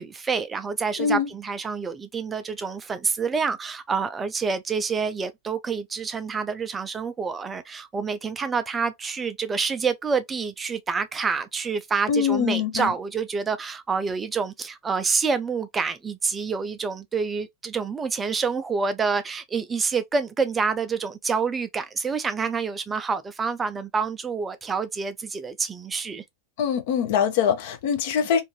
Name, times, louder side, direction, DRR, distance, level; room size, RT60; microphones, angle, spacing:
voice 1, 0.0-26.2, right 5 dB, 15° right, 0.4 m, -27 dB
voice 2, 1.0-1.3 12.1-12.9 26.6-28.4, left 7 dB, 50° left, 0.7 m, -23 dB
2.6 x 2.5 x 2.8 m
figure-of-eight pair, 90°, 0 cm